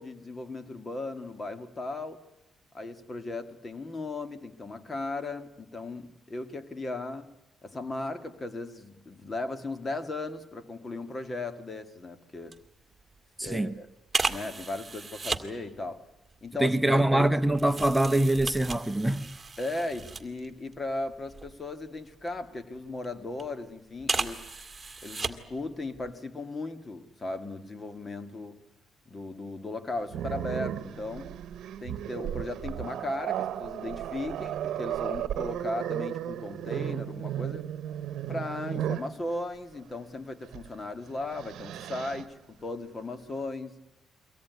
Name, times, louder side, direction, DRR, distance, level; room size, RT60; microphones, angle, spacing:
voice 1, 0.0-2.2 2.7-7.3 7.6-12.5 13.4-13.9 14.2-16.1 16.4-17.3 19.6-24.5 25.0-28.6 29.1-31.3 31.8-37.7 38.3-43.8, left 2 dB, 30° left, 2.0 m, -37 dB
sound 1, 12.5-12.7 13.0-13.2 14.1-15.5 16.3-20.8 21.1-22.4 23.0-23.5 24.0-25.6 26.0-26.1, right 4 dB, 20° right, 2.0 m, -35 dB
voice 2, 13.4-13.8 16.6-19.3, right 1 dB, 5° right, 1.0 m, -24 dB
Growling, 30.1-39.1 40.5-40.7 41.1-42.3, right 11 dB, 75° right, 1.0 m, -34 dB
24.0 x 17.0 x 9.4 m
cardioid pair, 90°, 0 cm